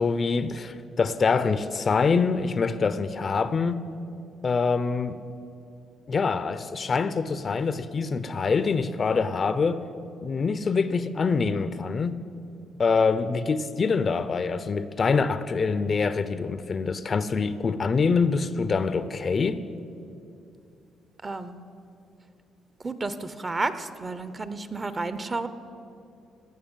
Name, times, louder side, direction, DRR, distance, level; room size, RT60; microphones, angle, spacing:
voice 1, 0.0-3.8 4.4-5.2 6.1-9.8 10.2-12.2 12.8-19.6, left 4 dB, 40° left, 0.5 m, -25 dB
voice 2, 21.2-21.6 22.8-25.5, right 3 dB, 30° right, 0.8 m, -31 dB
17.0 x 5.9 x 9.0 m
cardioid pair, 90°, 0 cm